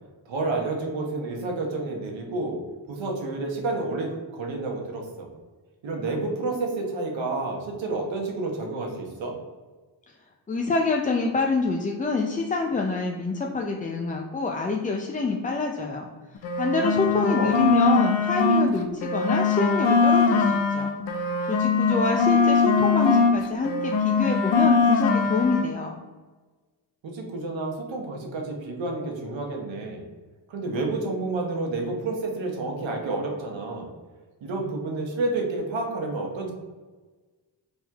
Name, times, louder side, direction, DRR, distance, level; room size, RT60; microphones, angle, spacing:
voice 1, 0.2-2.6 2.9-5.3 5.8-9.3 17.2-17.7 27.0-30.0 30.5-33.9 34.4-36.5, right 2 dB, 85° right, 1 dB, 1.0 m, -30 dB
voice 2, 10.5-16.1 16.6-20.9 21.5-26.0, left 3 dB, 20° left, 1 dB, 0.3 m, -26 dB
sound 1, 16.4-18.7 19.0-23.4 23.6-25.7, left 4 dB, 85° left, 0.6 m, -21 dB
4.3 x 3.5 x 2.3 m, 1.3 s
cardioid pair, 65°, 45 cm